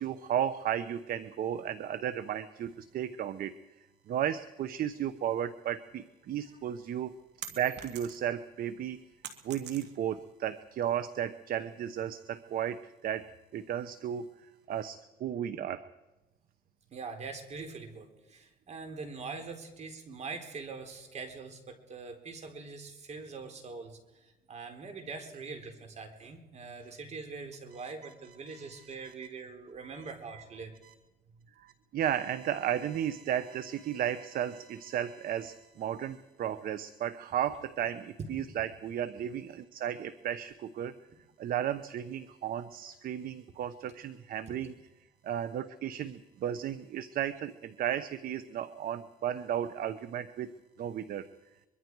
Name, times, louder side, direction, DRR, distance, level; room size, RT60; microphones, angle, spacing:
voice 1, 0.0-7.1 7.5-9.0 9.4-14.3 14.7-15.8 28.5-28.9 30.8-30.9 31.6-40.9 41.4-44.7 45.2-50.5 50.8-51.3, right 10 dB, 60° right, 13 dB, 1.0 m, -34 dB
sound 1, 6.6-8.4 8.8-10.2, right 10 dB, 85° right, 3.0 m, -45 dB
voice 2, 16.9-30.7, right 4 dB, 40° right, 5 dB, 4.0 m, -43 dB
24.0 x 23.0 x 4.8 m, 1.0 s
cardioid pair, 110°, 17 cm